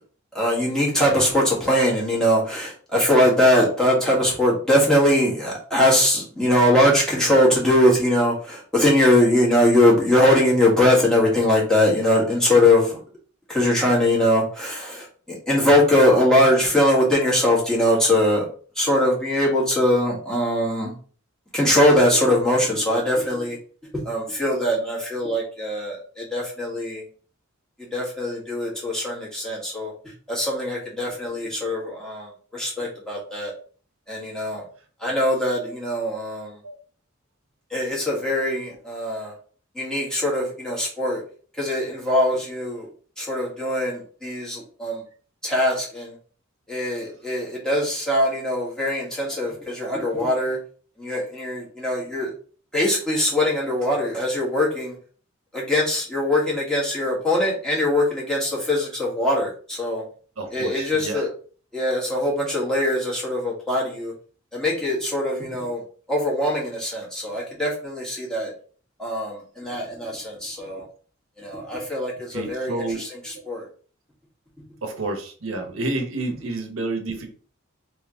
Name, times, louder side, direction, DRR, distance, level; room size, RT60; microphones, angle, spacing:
voice 1, 0.3-13.0 13.5-18.4 18.7-21.0 21.5-23.6 24.0-27.0 27.9-29.9 30.3-33.5 34.1-34.6 35.0-36.6 37.7-39.3 39.7-41.2 41.6-42.9 43.2-45.0 45.4-46.1 46.7-50.6 51.0-52.3 52.7-54.9 55.5-60.0 60.5-61.3 61.7-64.1 64.5-65.8 66.1-68.5 69.0-70.8 71.4-72.7 73.2-73.7, left 1 dB, 5° left, -5 dB, 1.6 m, -21 dB
voice 2, 60.4-61.3 72.3-73.0 74.8-77.3, right 2 dB, 85° right, 5 dB, 0.9 m, -29 dB
3.5 x 2.8 x 3.7 m, 0.42 s
head